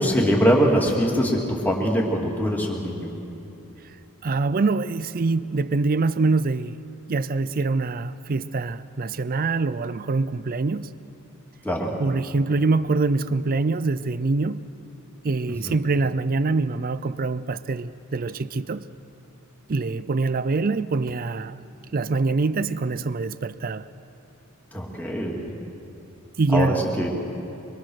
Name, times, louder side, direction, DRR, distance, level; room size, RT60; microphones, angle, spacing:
voice 1, 0.0-3.1 11.6-11.9 15.6-15.7 24.7-25.4 26.5-27.1, equal, 10° left, 2.6 m, -22 dB
voice 2, 4.2-6.8 7.1-10.9 12.0-14.6 15.2-18.8 19.7-21.6 21.9-23.8 26.4-26.8, right 3 dB, 40° right, 0.5 m, -24 dB
24.5 x 23.5 x 6.5 m
head